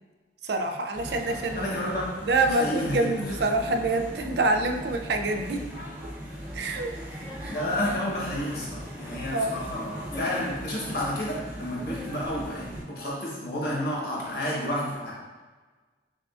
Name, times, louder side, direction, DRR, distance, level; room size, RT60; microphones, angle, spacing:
voice 1, 0.4-1.7 2.2-5.7 6.5-6.9 7.4-7.6 9.2-9.6, right 2 dB, 65° right, 5 dB, 0.4 m, -26 dB
sound 1, 0.9-12.8, equal, 10° right, 0.7 m, -38 dB
voice 2, 1.5-2.0 2.6-3.1 7.5-15.1, left 1 dB, 55° left, -5 dB, 1.1 m, -30 dB
6.3 x 2.4 x 2.4 m, 1.3 s
head